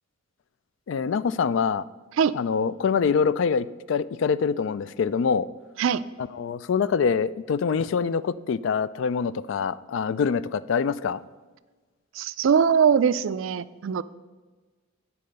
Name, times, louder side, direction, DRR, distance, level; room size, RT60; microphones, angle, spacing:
voice 1, 0.9-1.9 2.3-5.5 6.2-11.2, left 6 dB, 60° left, 17 dB, 0.3 m, -25 dB
voice 2, 12.2-14.0, right 7 dB, 65° right, 15 dB, 0.3 m, -21 dB
10.5 x 4.2 x 6.6 m, 1.3 s
head